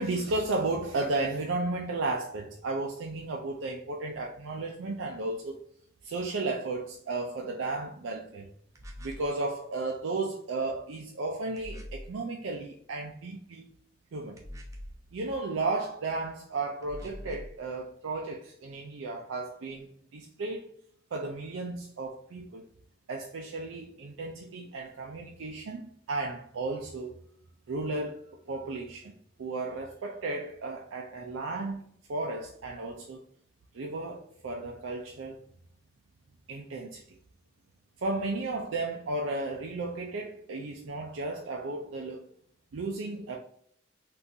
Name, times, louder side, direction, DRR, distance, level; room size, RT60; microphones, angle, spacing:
voice 1, 0.0-5.6 6.0-8.5 9.0-13.7 14.1-14.4 15.1-20.7 21.1-22.7 23.1-27.2 27.7-29.1 29.4-33.2 33.7-35.4 36.5-37.0 38.0-42.3 42.7-43.4, right 2 dB, 85° right, 0.4 m, -34 dB
sound 1, 8.8-9.3 11.6-12.2 14.4-15.0 16.8-17.6, left 1 dB, 15° right, 0.3 m, -43 dB
3.6 x 2.4 x 2.7 m
head